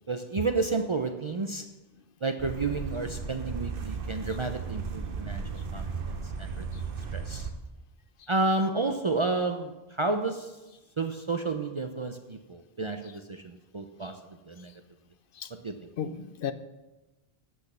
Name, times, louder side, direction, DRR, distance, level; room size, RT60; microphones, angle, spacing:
voice 1, 0.1-1.6 2.2-5.4 5.7-5.9 6.2-6.7 7.1-7.5 8.3-10.6 11.0-14.2 14.5-14.7 15.6-15.7, right 3 dB, 40° right, 6 dB, 0.4 m, -31 dB
sound 1, 2.4-7.5, right 5 dB, 60° right, 1.0 m, -35 dB
voice 2, 16.0-16.5, left 8 dB, 65° left, 12 dB, 0.7 m, -34 dB
8.5 x 6.2 x 6.7 m, 1.1 s
omnidirectional pair, 1.0 m